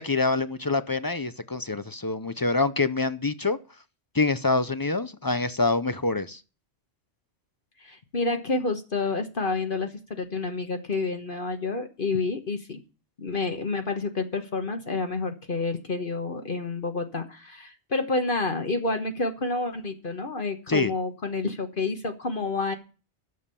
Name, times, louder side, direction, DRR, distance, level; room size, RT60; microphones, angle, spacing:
voice 1, 0.0-3.6 4.1-6.4 20.7-20.9, left 3 dB, 30° left, 14 dB, 0.4 m, -26 dB
voice 2, 7.8-12.8 13.2-22.7, left 3 dB, 50° left, 6 dB, 1.4 m, -29 dB
11.0 x 7.3 x 6.8 m, 0.34 s
omnidirectional pair, 1.2 m